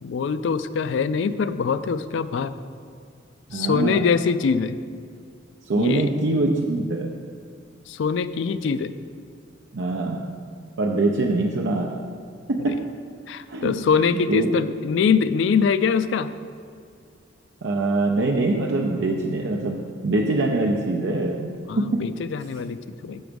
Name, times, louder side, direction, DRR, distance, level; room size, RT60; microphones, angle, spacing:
voice 1, 0.0-2.5 3.5-4.8 5.8-6.1 7.9-8.9 12.6-12.8 13.3-16.3 21.7-23.2, left 6 dB, 70° left, 13 dB, 0.3 m, -23 dB
voice 2, 3.5-4.1 5.6-7.2 9.7-10.3 10.8-12.0 12.5-12.8 13.5-13.8 14.3-14.5 17.6-22.1, right 2 dB, 70° right, 1 dB, 0.5 m, -24 dB
7.0 x 6.2 x 5.1 m, 2.2 s
head